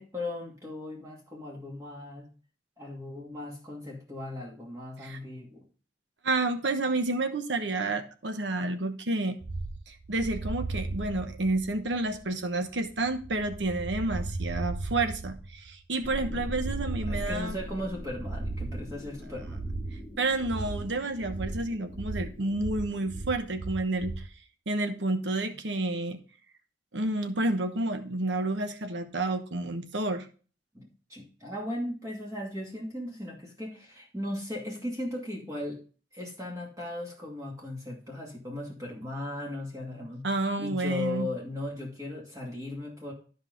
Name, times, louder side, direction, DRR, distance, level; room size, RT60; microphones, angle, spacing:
voice 1, 0.0-2.3 2.8-5.7 17.1-19.6 30.7-35.8 36.1-43.1, left 1 dB, 20° right, -2 dB, 2.4 m, -37 dB
voice 2, 6.2-9.4 9.9-17.6 20.2-24.2 24.7-26.2 26.9-30.3 40.2-41.3, right 2 dB, 85° right, 7 dB, 1.1 m, -30 dB
sound 1, 9.4-24.3, right 3 dB, 50° right, 0.7 m, -37 dB
sound 2, 16.0-23.3, left 1 dB, 10° left, 1.1 m, -42 dB
12.0 x 5.4 x 3.9 m, 0.37 s
head